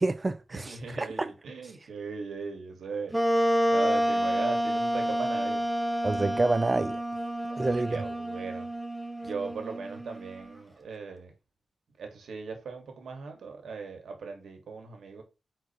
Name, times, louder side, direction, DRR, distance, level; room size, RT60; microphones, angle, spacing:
voice 1, 0.0-1.3 6.0-7.0 7.6-8.0, right 2 dB, 25° right, 0.3 m, -28 dB
voice 2, 0.5-3.2 3.7-5.6 7.5-8.7 9.2-11.3 12.0-15.2, right 4 dB, 90° right, 1.7 m, -38 dB
Wind instrument woodwind instrument, 3.1-10.5, equal, 5° right, 1.0 m, -29 dB
8.6 x 4.4 x 2.9 m
wide cardioid pair, 95°, 0 cm